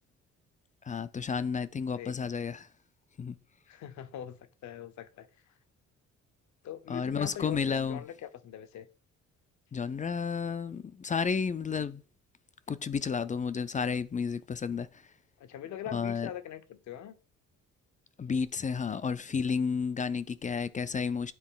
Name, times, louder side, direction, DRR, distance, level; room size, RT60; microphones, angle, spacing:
voice 1, 0.9-2.7 3.2-3.4 6.9-8.0 9.7-12.0 12.7-14.9 15.9-16.3 18.2-21.3, left 6 dB, 25° left, 0.4 m, -31 dB
voice 2, 3.7-5.5 6.6-8.9 15.4-17.1, left 10 dB, 70° left, 0.8 m, -42 dB
9.6 x 3.9 x 3.8 m
cardioid pair, 90°, 30 cm